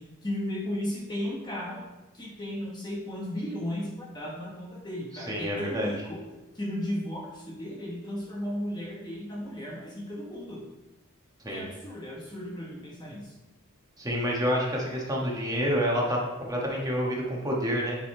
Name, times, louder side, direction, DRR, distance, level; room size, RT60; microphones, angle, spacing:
voice 1, 0.0-1.8 2.1-6.2 6.5-10.7 11.5-13.4, left 1 dB, 20° left, -2 dB, 1.1 m, -35 dB
voice 2, 5.3-5.9 11.4-11.6 14.0-18.0, equal, 15° right, -2 dB, 1.4 m, -28 dB
9.2 x 4.1 x 4.3 m, 1.1 s
head